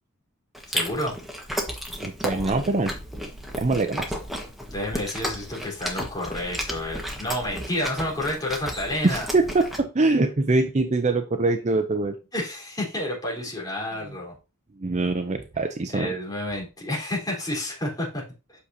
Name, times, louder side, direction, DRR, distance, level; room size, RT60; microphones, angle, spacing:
Chewing mastication, 0.5-9.8, equal, ahead, 1.4 m, -33 dB
voice 1, 0.7-1.2 4.7-9.3 12.3-14.3 15.9-18.2, left 1 dB, 20° left, -4 dB, 3.8 m, -30 dB
voice 2, 2.0-2.9 3.6-4.2 9.0-12.2 14.8-16.1, right 2 dB, 35° right, 8 dB, 0.6 m, -23 dB
8.4 x 6.4 x 2.8 m, 0.30 s
head